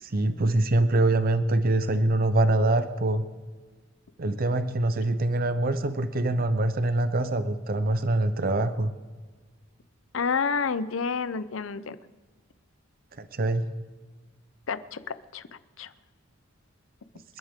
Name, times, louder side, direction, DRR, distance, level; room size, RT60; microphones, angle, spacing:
voice 1, 0.0-3.3 4.2-8.9 13.2-13.7, right 2 dB, 45° right, 11 dB, 0.7 m, -24 dB
voice 2, 10.1-12.0 14.7-15.4 15.8-15.9, left 5 dB, 75° left, 14 dB, 0.6 m, -29 dB
27.5 x 11.0 x 3.7 m, 1.4 s
head